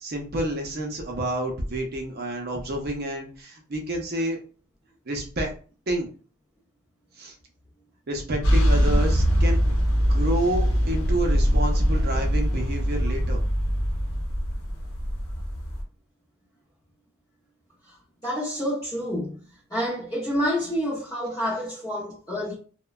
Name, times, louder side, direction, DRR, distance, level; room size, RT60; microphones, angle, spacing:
voice 1, 0.0-4.4 5.1-5.6 5.9-6.1 7.2-7.3 8.1-9.7 10.1-13.4, right 1 dB, 45° right, 0.6 m, -29 dB
sound 1, 8.4-15.8, equal, 60° left, 0.8 m, -22 dB
voice 2, 18.2-19.4 19.7-22.5, equal, 15° left, 0.5 m, -28 dB
3.0 x 2.1 x 2.3 m
head